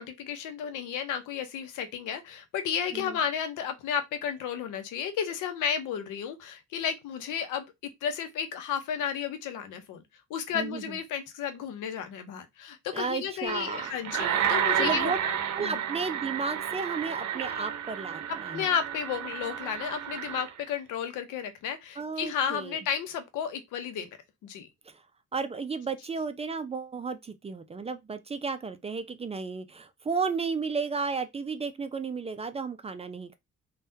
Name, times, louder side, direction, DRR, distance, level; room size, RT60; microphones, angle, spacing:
voice 1, 0.0-7.6 8.0-10.0 10.3-15.8 18.5-24.1 24.4-24.7, left 8 dB, 85° left, 0.7 m, -33 dB
voice 2, 10.5-11.0 12.9-13.9 14.8-15.2 15.6-18.7 22.0-22.8 24.9-25.0 25.3-33.4, right 5 dB, 20° right, 0.3 m, -33 dB
sound 1, 13.5-20.6, right 9 dB, 65° right, 0.6 m, -31 dB
3.5 x 2.3 x 2.6 m
cardioid pair, 90°, 30 cm